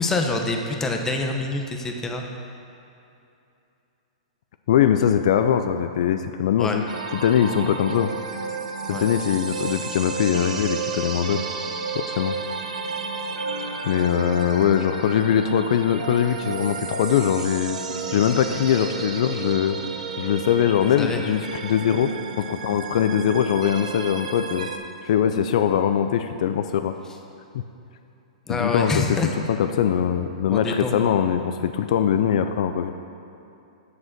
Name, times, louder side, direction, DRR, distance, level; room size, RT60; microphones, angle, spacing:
voice 1, 0.0-2.2 6.6-6.8 8.9-9.1 21.0-21.2 28.5-29.3 30.5-30.9, left 3 dB, 10° left, 2 dB, 0.8 m, -26 dB
voice 2, 4.7-6.8 7.1-8.1 8.9-11.4 11.9-12.3 13.8-17.8 18.1-19.8 20.2-22.1 22.4-24.7 25.0-26.9 28.5-29.2 29.5-32.9, left 9 dB, 65° left, 8 dB, 0.4 m, -22 dB
sound 1, 6.9-24.8, right 4 dB, 85° right, 0.8 m, -32 dB
7.3 x 6.3 x 6.0 m, 2.7 s
hypercardioid pair, 140°, 4 cm